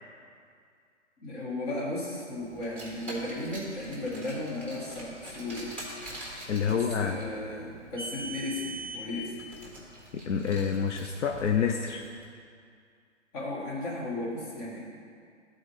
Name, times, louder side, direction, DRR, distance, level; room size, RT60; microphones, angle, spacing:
voice 1, 1.2-5.7 6.7-9.4 13.3-14.8, left 2 dB, 35° left, -5 dB, 1.8 m, -35 dB
Car, 2.6-12.1, right 2 dB, 5° left, 1.3 m, -43 dB
voice 2, 6.5-7.2 10.1-12.1, left 7 dB, 75° left, 3 dB, 0.6 m, -28 dB
12.0 x 4.3 x 3.2 m, 2.3 s
hypercardioid pair, 140°, 36 cm